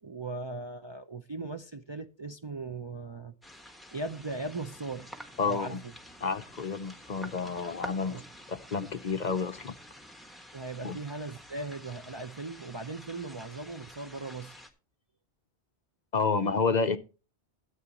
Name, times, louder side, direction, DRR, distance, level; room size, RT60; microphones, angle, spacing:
voice 1, 0.0-3.3 3.9-5.1 5.4-5.9 8.0-8.2 10.5-14.6, right 3 dB, 35° right, 0.4 m, -38 dB
sound 1, 3.4-14.7, equal, ahead, 1.2 m, -49 dB
voice 2, 5.4-5.8 6.2-8.2 8.5-9.7 10.8-11.0 16.1-17.0, left 5 dB, 50° left, 0.6 m, -30 dB
13.5 x 8.5 x 2.9 m
omnidirectional pair, 1.1 m